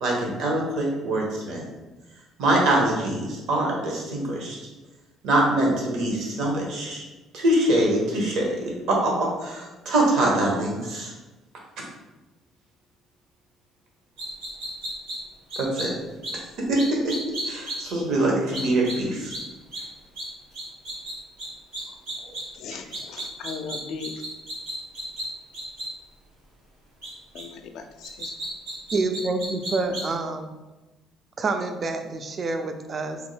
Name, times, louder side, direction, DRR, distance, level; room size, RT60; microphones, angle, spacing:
voice 1, 0.0-1.6 2.4-4.6 5.2-7.0 7.3-11.1 15.6-15.9 16.7-16.8 17.0-17.1 17.4-19.3 22.7-22.8, right 1 dB, 70° right, -2 dB, 0.9 m, -24 dB
sound 1, 14.2-15.2 15.5-15.9 16.2-16.3 16.8-17.8 18.5-18.9 19.3-19.4 19.7-19.8 20.2-20.3 20.5-21.1 21.4-21.5 21.7-22.4 22.9-25.2 25.5-25.9 27.0-27.1 27.4-27.5 28.0-30.1, right 1 dB, 90° right, 1.4 m, -33 dB
voice 2, 22.6-24.1 27.3-27.8 28.2-28.3, left 5 dB, 75° left, 6 dB, 0.3 m, -37 dB
voice 3, 28.9-30.5 31.4-33.2, right 3 dB, 45° right, 6 dB, 0.4 m, -27 dB
3.5 x 2.1 x 3.2 m, 1.1 s
supercardioid pair, 65°, 0 cm